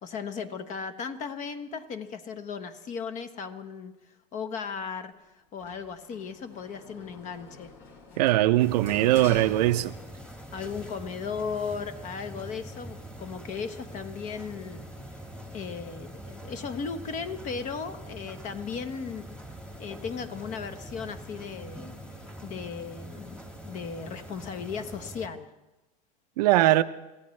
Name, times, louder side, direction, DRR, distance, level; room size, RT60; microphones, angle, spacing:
voice 1, 0.0-3.9 4.3-5.1 5.5-7.7 10.5-14.9 15.5-19.3 19.8-21.9 22.4-25.5, left 6 dB, 35° left, 1.2 m, -36 dB
Sliding door, 5.6-10.4 10.7-11.7, left 4 dB, 60° left, 4.1 m, -46 dB
voice 2, 8.2-9.9 26.4-26.8, right 16 dB, 75° right, 0.7 m, -21 dB
sound 1, 8.6-25.3, right 1 dB, 5° left, 1.7 m, -44 dB
26.0 x 15.5 x 3.3 m
supercardioid pair, 125°, 20 cm